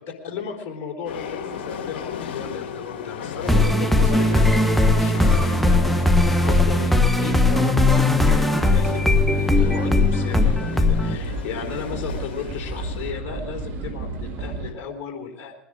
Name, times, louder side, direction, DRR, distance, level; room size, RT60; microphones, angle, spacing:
voice 1, 0.2-15.5, left 6 dB, 45° left, 2 dB, 4.0 m, -35 dB
sound 1, 1.1-13.1, left 7 dB, 65° left, 2.1 m, -36 dB
sound 2, 3.5-11.2, left 2 dB, ahead, 1.0 m, -18 dB
sound 3, 4.0-14.7, right 3 dB, 50° right, 2.7 m, -34 dB
21.0 x 10.5 x 5.1 m, 0.92 s
hypercardioid pair, 85°, 6 cm